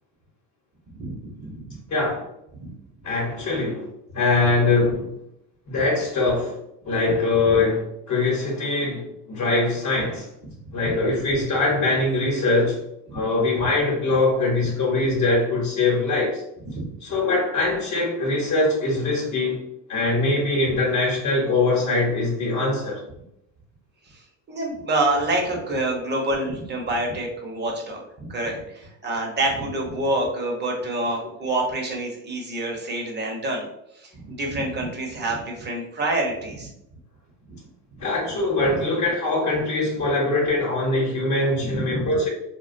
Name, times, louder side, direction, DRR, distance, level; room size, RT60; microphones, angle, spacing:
voice 1, 0.9-1.8 2.5-2.7 10.8-11.0 13.1-13.2 16.7-16.9 24.0-24.2 24.5-33.6 33.9-36.7 37.5-37.6 37.9-38.0 38.6-38.8 41.6-42.2, right 2 dB, 25° right, 0 dB, 0.8 m, -27 dB
voice 2, 1.9-2.2 3.0-3.9 4.1-5.2 5.7-6.5 6.8-10.3 10.7-12.8 13.1-16.4 17.0-19.6 19.9-23.0 38.0-42.3, left 2 dB, 45° left, -3 dB, 1.0 m, -22 dB
2.3 x 2.1 x 2.5 m, 0.79 s
supercardioid pair, 85°, 39 cm